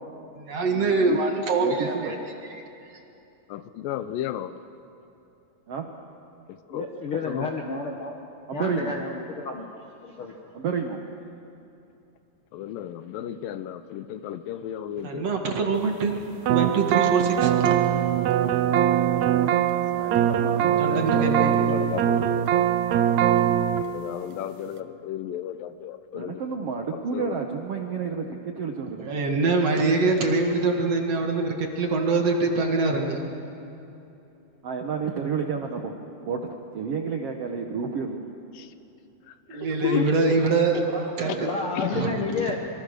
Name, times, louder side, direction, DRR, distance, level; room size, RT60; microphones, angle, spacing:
voice 1, 0.4-2.2 2.5-2.6 15.0-17.7 20.6-21.7 29.0-33.3 39.5-41.5 41.9-42.2, right 3 dB, 50° right, 2 dB, 2.6 m, -24 dB
voice 2, 1.6-2.3 5.7-5.9 8.5-8.9 10.5-11.0 19.9-20.6 26.1-29.2 34.6-35.9 36.2-38.2, right 5 dB, 65° right, 3 dB, 1.5 m, -30 dB
voice 3, 3.5-4.6 6.5-6.9 7.3-7.5 12.5-15.3 20.7-21.1 21.5-22.5 23.9-26.4 26.9-27.3 38.5-38.7 39.3-40.1 41.3-41.4 41.8-42.0 42.3-42.5, left 11 dB, 75° left, 11 dB, 2.3 m, -33 dB
voice 4, 6.7-8.2 8.5-9.7 10.0-10.3 41.4-42.6, left 4 dB, 55° left, 1 dB, 1.5 m, -31 dB
sound 1, 16.5-23.8, right 10 dB, 80° right, 1.6 m, -22 dB
26.5 x 23.5 x 6.6 m, 2.8 s
omnidirectional pair, 4.2 m